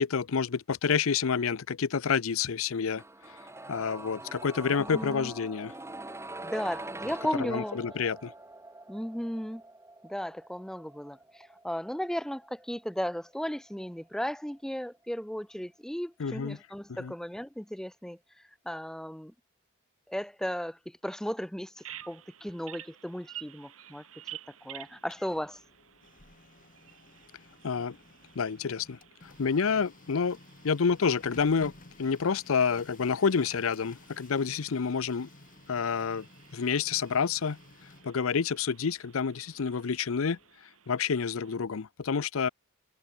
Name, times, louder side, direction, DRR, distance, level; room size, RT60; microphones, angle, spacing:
voice 1, 0.0-3.0 3.7-5.7 7.4-8.3 16.2-16.6 16.9-17.1 27.6-28.0 28.4-30.4 30.6-31.7 32.0-35.3 35.7-36.3 36.5-37.6 38.0-40.4 40.9-42.5, left 6 dB, 75° left, 0.6 m, -28 dB
sound 1, 3.0-14.8 15.1-15.2, right 2 dB, 15° right, 2.4 m, -44 dB
voice 2, 4.7-5.3 6.4-7.8 8.9-9.6 10.0-18.2 18.6-19.3 20.1-24.0 24.6-25.6, equal, 5° left, 0.7 m, -35 dB
Bird vocalization bird call bird song, 21.8-41.6, right 11 dB, 80° right, 2.3 m, -52 dB
Printer, 24.8-40.6, left 2 dB, 40° left, 2.2 m, -55 dB
head